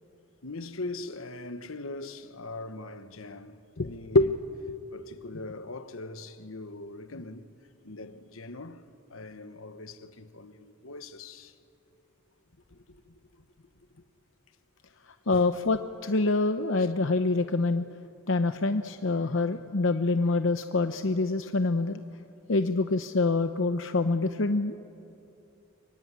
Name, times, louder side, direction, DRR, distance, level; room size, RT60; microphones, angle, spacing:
voice 1, 0.4-4.3 4.9-7.5 7.8-11.6 12.7-14.0 15.3-15.4 16.8-16.9, left 2 dB, 85° left, 1.3 m, -42 dB
voice 2, 15.3-17.9 18.3-22.0 22.5-24.7, left 3 dB, 70° left, 0.8 m, -25 dB
24.5 x 23.5 x 9.8 m
head